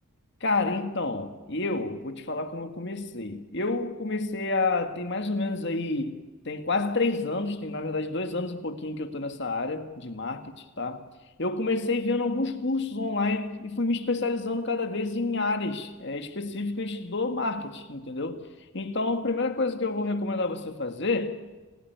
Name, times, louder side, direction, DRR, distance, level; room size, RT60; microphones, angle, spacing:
voice 1, 0.4-6.2 6.5-11.1 11.4-18.4 18.7-21.5, left 3 dB, 50° left, 1.9 m, -29 dB
28.5 x 16.0 x 9.4 m
head